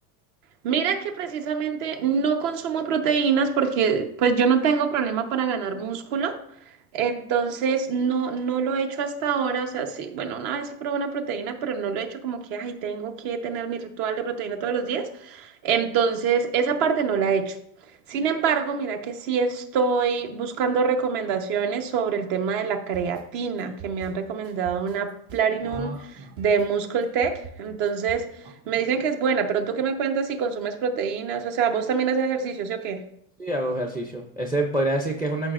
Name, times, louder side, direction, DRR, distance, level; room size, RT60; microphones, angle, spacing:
voice 1, 0.6-6.4 6.9-17.6 18.1-28.3 28.7-33.0, right 6 dB, 65° right, 6 dB, 1.2 m, -25 dB
sound 1, 22.9-28.2, right 6 dB, 85° right, 3.1 m, -43 dB
voice 2, 25.6-26.3 33.4-35.5, right 1 dB, 10° right, 4 dB, 0.4 m, -27 dB
13.0 x 5.3 x 2.5 m, 0.74 s
supercardioid pair, 140°, 43 cm